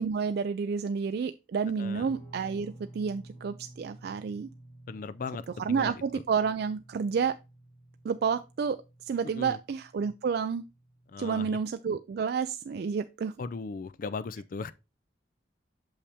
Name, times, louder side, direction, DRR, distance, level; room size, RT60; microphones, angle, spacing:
voice 1, 0.0-4.5 5.6-7.4 8.0-8.8 9.1-10.7 11.2-13.3, right 6 dB, 60° right, 0.3 m, -30 dB
voice 2, 1.8-2.1 4.9-6.2 9.2-9.6 11.1-11.6 13.4-14.7, left 4 dB, 45° left, 0.4 m, -38 dB
Guitar, 2.0-11.2, right 1 dB, 10° right, 3.8 m, -52 dB
6.6 x 5.6 x 3.4 m
head